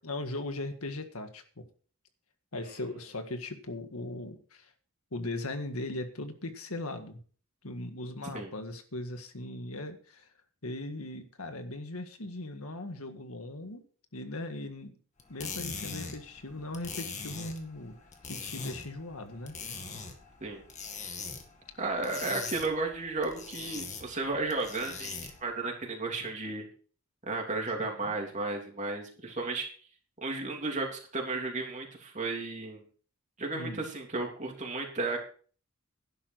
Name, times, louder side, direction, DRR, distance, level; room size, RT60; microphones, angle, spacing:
voice 1, 0.0-1.4 2.5-4.7 5.1-7.2 7.6-10.3 10.6-13.8 14.1-15.0 15.3-18.0 18.3-19.5 27.8-28.1 33.5-33.8, left 2 dB, 85° left, 7 dB, 1.8 m, -39 dB
sound 1, 15.2-25.5, left 5 dB, 35° left, 1.9 m, -42 dB
voice 2, 21.8-26.7 27.2-29.7 30.2-32.8 33.4-35.2, right 3 dB, 35° right, 1 dB, 3.2 m, -34 dB
11.5 x 10.5 x 4.7 m, 0.43 s
head